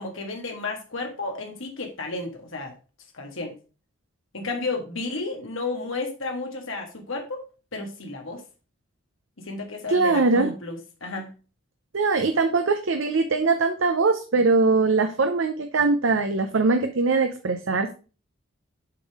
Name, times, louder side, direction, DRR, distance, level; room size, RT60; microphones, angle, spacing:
voice 1, 0.0-2.7 3.1-3.5 4.3-7.4 7.7-8.4 9.4-11.3, left 3 dB, 70° left, 2 dB, 1.6 m, -32 dB
voice 2, 9.9-10.5 11.9-17.9, right 3 dB, 70° right, 7 dB, 0.6 m, -21 dB
7.5 x 3.7 x 4.8 m, 0.34 s
head